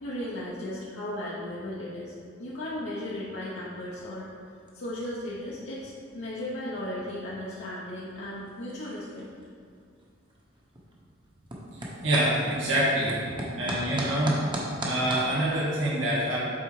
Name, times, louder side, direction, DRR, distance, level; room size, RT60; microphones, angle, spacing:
voice 1, 0.0-2.1 2.4-4.3 4.7-9.3, left 1 dB, 75° left, -8 dB, 1.1 m, -36 dB
sound 1, 2.6-15.3, right 1 dB, 25° right, 1.1 m, -40 dB
voice 2, 12.0-13.2 13.6-14.4 14.8-16.4, right 1 dB, 90° right, -6 dB, 1.9 m, -25 dB
8.3 x 4.0 x 4.9 m, 2.2 s
head